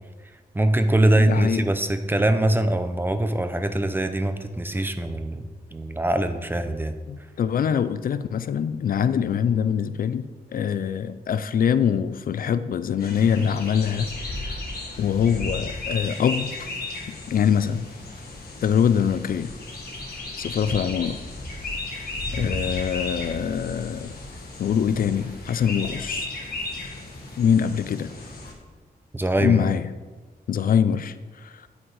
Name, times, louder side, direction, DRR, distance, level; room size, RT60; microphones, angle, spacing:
voice 1, 0.5-5.4 5.7-6.9 29.1-29.6, right 1 dB, 15° right, 8 dB, 0.6 m, -22 dB
voice 2, 1.1-1.6 7.1-14.1 15.0-16.5 17.1-17.9 18.6-19.5 20.4-21.2 22.3-24.1 24.6-26.3 27.4-28.1 29.4-29.9 30.5-31.7, left 8 dB, 65° left, 13 dB, 0.4 m, -24 dB
sound 1, 13.0-28.5, left 2 dB, 80° left, 1.7 m, -34 dB
9.0 x 6.3 x 4.8 m, 1.3 s
wide cardioid pair, 140°, 16 cm